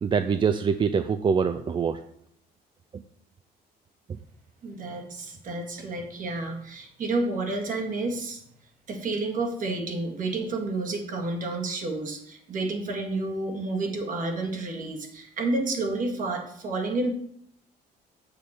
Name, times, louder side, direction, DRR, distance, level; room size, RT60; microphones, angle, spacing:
voice 1, 0.0-2.0 2.9-3.0, right 6 dB, 30° right, 9 dB, 0.4 m, -24 dB
voice 2, 4.6-8.4 8.9-17.1, right 2 dB, 50° right, 2 dB, 1.8 m, -30 dB
7.4 x 6.3 x 4.3 m, 0.70 s
cardioid pair, 110°, 17 cm